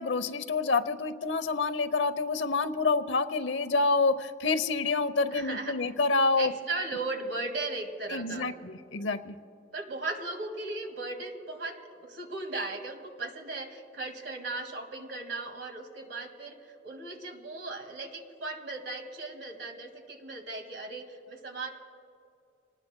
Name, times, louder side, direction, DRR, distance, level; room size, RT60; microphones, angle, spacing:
voice 1, 0.0-6.5 8.1-9.4, left 3 dB, 75° left, 11 dB, 0.8 m, -27 dB
voice 2, 5.3-5.8 6.4-8.5 9.7-16.6 16.8-21.7, right 3 dB, 65° right, 4 dB, 2.0 m, -37 dB
27.0 x 19.5 x 2.2 m, 2.4 s
head